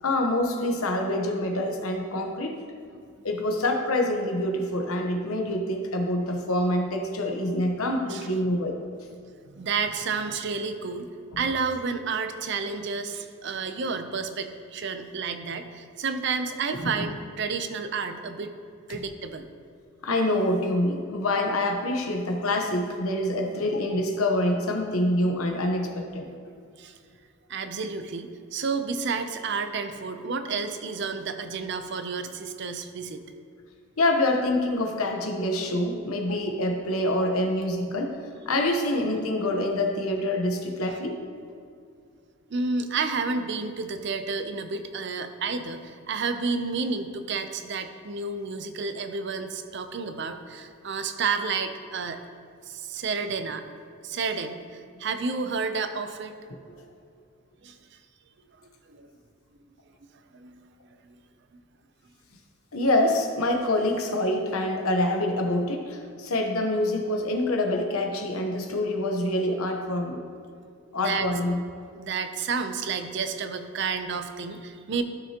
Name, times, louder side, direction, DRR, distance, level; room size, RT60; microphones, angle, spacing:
voice 1, 0.0-2.6 3.2-8.8 11.3-11.4 16.8-17.1 18.9-19.0 20.0-26.3 34.0-38.2 38.4-41.2 62.7-70.2 70.9-71.6, left 1 dB, 85° left, 3 dB, 1.0 m, -26 dB
voice 2, 9.5-11.1 11.4-18.5 18.9-19.5 26.8-26.9 27.5-33.2 42.5-52.2 52.7-53.6 54.0-56.4 57.6-57.8 58.9-59.1 60.3-60.6 61.0-61.2 61.5-61.6 70.9-71.3 72.0-75.0, right 4 dB, 55° right, 8 dB, 0.5 m, -30 dB
12.5 x 6.0 x 2.9 m, 2.3 s
head